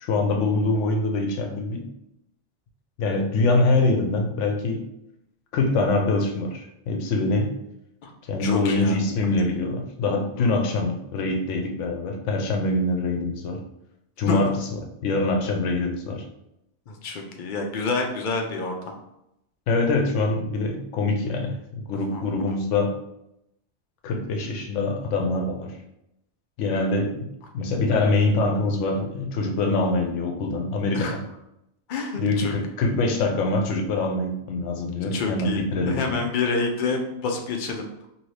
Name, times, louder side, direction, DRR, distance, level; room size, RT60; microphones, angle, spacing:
voice 1, 0.0-1.9 3.0-4.8 5.5-7.5 8.2-13.6 14.2-16.2 19.7-23.0 24.0-25.7 26.6-31.2 32.2-36.2, left 2 dB, 85° left, 3 dB, 0.9 m, -24 dB
voice 2, 8.4-9.0 10.3-10.9 14.3-14.4 16.9-19.0 22.1-22.6 30.9-31.2 31.9-32.5 34.9-37.8, left 3 dB, 60° left, 3 dB, 0.6 m, -28 dB
2.7 x 2.7 x 3.2 m, 0.84 s
omnidirectional pair, 1.2 m